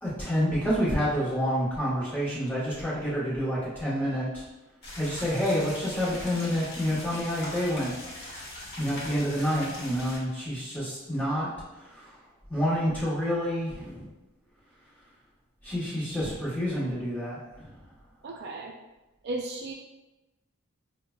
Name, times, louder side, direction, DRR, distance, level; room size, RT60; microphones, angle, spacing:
voice 1, 0.0-4.4 5.0-8.0 8.8-11.5 11.7-12.2 12.5-14.1 15.6-17.7, equal, 10° left, -9 dB, 1.1 m, -28 dB
sound 1, 4.8-10.2, left 1 dB, 50° left, 0.9 m, -41 dB
voice 2, 18.2-18.7 19.2-19.7, right 2 dB, 50° right, 0 dB, 0.3 m, -35 dB
5.5 x 2.1 x 2.2 m, 1.1 s
head